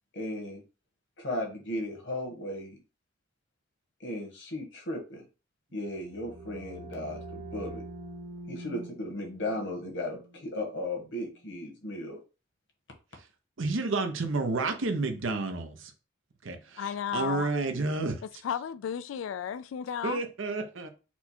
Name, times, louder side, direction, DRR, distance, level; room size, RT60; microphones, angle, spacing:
voice 1, 0.1-0.6 1.2-2.8 4.0-5.2 5.7-7.8 8.5-12.2, left 1 dB, 65° left, 1.3 m, -36 dB
sound 1, 5.8-11.4, right 1 dB, 50° right, 1.1 m, -45 dB
voice 2, 13.6-15.9 16.4-18.2 20.0-20.9, right 3 dB, 85° right, 0.8 m, -30 dB
voice 3, 16.8-17.5 18.4-20.2, left 8 dB, 85° left, 0.3 m, -33 dB
4.3 x 2.3 x 4.3 m
head